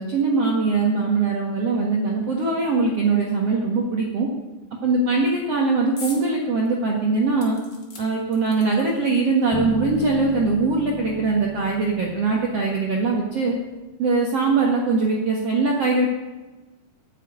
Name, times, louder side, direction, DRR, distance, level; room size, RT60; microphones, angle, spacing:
voice 1, 0.0-4.3 4.8-7.6 8.0-13.6 14.0-16.1, right 3 dB, 50° right, -1 dB, 2.1 m, -21 dB
sound 1, 6.0-6.3 6.7-6.8 7.4-9.0 9.9-10.0 10.3-10.4, left 3 dB, 30° left, 2.8 m, -40 dB
sound 2, 9.5-13.3, left 7 dB, 75° left, 2.8 m, -35 dB
15.0 x 8.5 x 9.3 m, 1.2 s
omnidirectional pair, 4.6 m